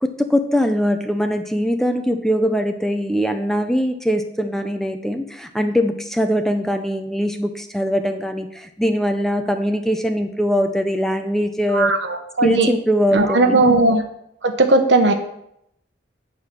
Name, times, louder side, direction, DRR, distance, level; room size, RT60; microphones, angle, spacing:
voice 1, 0.0-11.9 12.4-13.6, equal, ahead, 6 dB, 0.5 m, -21 dB
voice 2, 11.7-12.7 13.1-14.0 14.4-15.1, right 2 dB, 75° right, 6 dB, 1.1 m, -17 dB
8.6 x 4.8 x 5.8 m, 0.76 s
head